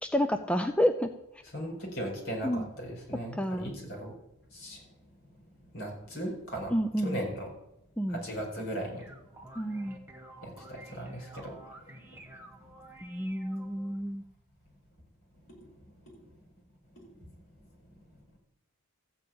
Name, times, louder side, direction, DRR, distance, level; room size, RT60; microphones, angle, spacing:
voice 1, 0.0-1.1 2.4-2.7 3.3-3.7 6.7-7.2 8.0-8.2 9.6-10.0 13.0-14.2, equal, 5° left, 7 dB, 0.4 m, -29 dB
voice 2, 1.5-4.1 4.5-4.9 5.5-7.5 8.1-9.1 10.4-11.8 12.1-12.2 15.5-15.6 16.1-16.2 16.9-17.1, equal, 60° left, -1 dB, 4.8 m, -38 dB
sound 1, 9.0-14.0, right 1 dB, 10° right, 1.3 m, -51 dB
14.5 x 5.0 x 8.6 m, 0.87 s
head